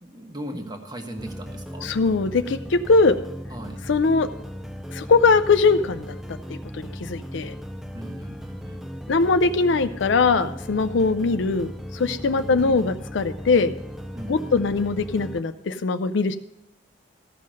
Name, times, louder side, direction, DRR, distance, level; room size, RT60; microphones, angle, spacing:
voice 1, 0.0-1.9 3.5-3.8 7.9-8.8 12.3-12.8 14.1-14.6, right 1 dB, 20° right, 4 dB, 1.3 m, -38 dB
sound 1, 1.2-15.4, equal, ahead, 0.4 m, -37 dB
voice 2, 1.8-3.2 3.9-4.3 4.9-7.5 9.1-13.7 14.3-16.4, left 4 dB, 65° left, 10 dB, 0.5 m, -21 dB
14.5 x 5.6 x 6.3 m, 0.90 s
head